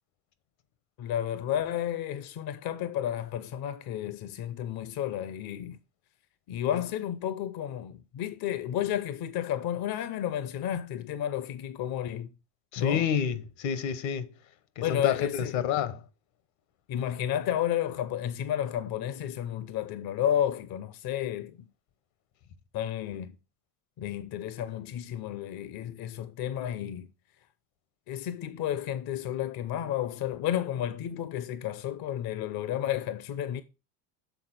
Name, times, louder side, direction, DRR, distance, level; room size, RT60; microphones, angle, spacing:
voice 1, 1.0-5.8 6.5-12.3 12.8-13.1 14.8-15.6 16.9-21.6 22.7-23.3 24.0-27.1 28.1-33.6, left 11 dB, 50° left, 0.7 m, -32 dB
voice 2, 12.7-14.3 14.8-16.0, left 8 dB, 65° left, 1.1 m, -28 dB
7.1 x 3.8 x 5.9 m
hypercardioid pair, 75°, 48 cm